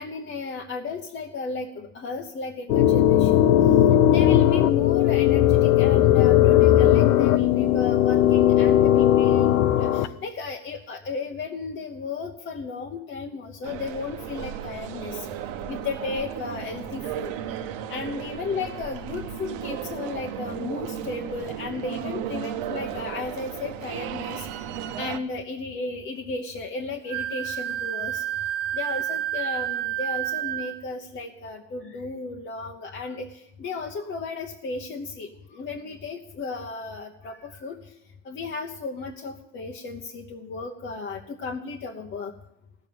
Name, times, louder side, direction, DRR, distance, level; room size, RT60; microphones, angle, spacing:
voice 1, 0.0-3.6 4.0-15.3 15.7-17.3 17.9-24.5 25.0-28.2 28.7-37.8 38.2-42.3, left 4 dB, 25° left, 1 dB, 0.9 m, -34 dB
sound 1, 2.7-10.1, left 12 dB, 75° left, 0.9 m, -18 dB
sound 2, 13.6-25.2, right 10 dB, 60° right, 1.2 m, -35 dB
Wind instrument woodwind instrument, 27.1-30.8, right 12 dB, 45° right, 0.7 m, -29 dB
15.5 x 7.0 x 9.4 m, 0.86 s
supercardioid pair, 135°, 44 cm